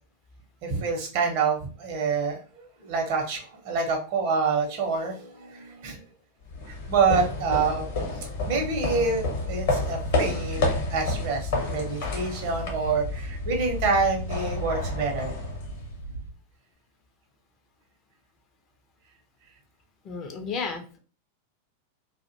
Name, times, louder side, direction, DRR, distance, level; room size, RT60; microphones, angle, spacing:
voice 1, 0.6-6.0 6.7-7.9 8.5-15.3, right 4 dB, 50° right, 3 dB, 0.7 m, -27 dB
sound 1, 6.5-16.1, left 2 dB, 55° left, 0.8 m, -30 dB
sound 2, 11.3-16.3, right 4 dB, 75° right, 0.3 m, -40 dB
voice 2, 20.0-21.0, left 5 dB, 30° left, 5 dB, 0.5 m, -33 dB
2.4 x 2.1 x 2.6 m, 0.37 s
figure-of-eight pair, 90°, 0 cm